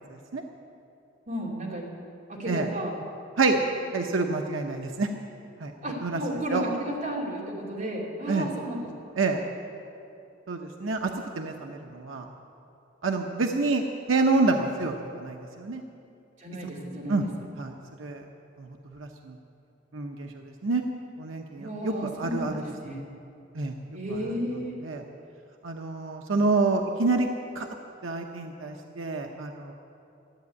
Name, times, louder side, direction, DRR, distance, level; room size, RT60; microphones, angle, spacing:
voice 1, 1.3-1.9 2.3-3.0 5.8-8.9 13.1-13.3 16.4-17.3 21.6-22.5 22.8-23.0 23.9-24.8, equal, 40° right, -4 dB, 2.9 m, -33 dB
voice 2, 3.9-5.1 5.6-5.7 6.0-6.2 6.5-6.6 8.3-8.5 9.2-9.4 10.5-11.1 11.4-12.3 13.0-13.8 14.1-15.8 17.1-17.2 17.6-17.7 18.0-18.2 18.6-19.4 19.9-20.8 21.2-22.5 23.5-23.7 24.8-25.0 25.6-27.3 27.5-27.7 28.0-29.7, right 3 dB, 90° right, 3 dB, 0.8 m, -27 dB
13.5 x 8.6 x 9.5 m, 2.7 s
head